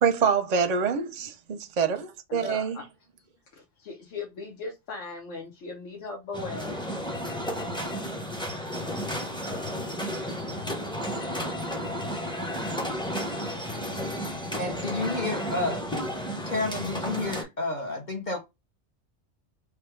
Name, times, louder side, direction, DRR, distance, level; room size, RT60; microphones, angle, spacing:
voice 1, 0.0-2.8, right 6 dB, 45° right, 0.6 m, -26 dB
voice 2, 2.3-2.8 3.6-6.8, left 3 dB, 90° left, 1.2 m, -38 dB
sound 1, 6.3-17.4, equal, 5° left, 0.5 m, -32 dB
voice 3, 14.6-15.9 16.5-18.4, left 2 dB, 45° left, 0.8 m, -30 dB
3.4 x 2.3 x 4.4 m
omnidirectional pair, 1.2 m